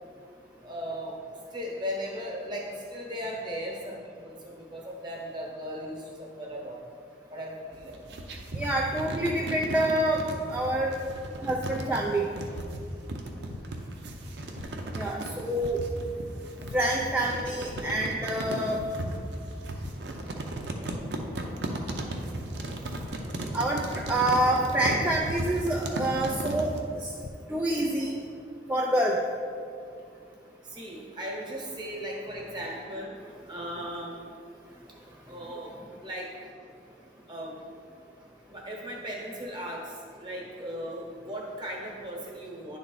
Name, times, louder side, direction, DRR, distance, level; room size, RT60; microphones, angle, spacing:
voice 1, 0.6-1.2 1.5-6.8 7.3-8.0 11.0-11.1 30.6-33.1 33.5-34.3 35.2-35.7 36.0-36.3 37.3-37.6 38.5-42.8, equal, 25° right, -2 dB, 1.1 m, -37 dB
sound 1, 7.7-26.8, right 1 dB, 70° right, 0.7 m, -35 dB
voice 2, 8.5-10.2 10.5-10.9 11.4-12.3 15.0-15.8 16.7-18.8 23.5-26.7 27.0-27.1 27.5-28.2 28.7-29.2, right 1 dB, 10° right, -2 dB, 0.4 m, -27 dB
sound 2, 13.5-13.6 14.5-14.7 15.6-15.7 16.7-16.8 17.7-17.8 18.8-18.9 19.3-19.5 19.8-19.9 20.9-21.0 21.9-22.1 23.0-23.1 24.0-24.1 25.1-25.2 26.2-26.3 27.0-27.3, left 5 dB, 70° left, 0.4 m, -41 dB
10.0 x 3.6 x 3.9 m, 2.4 s
head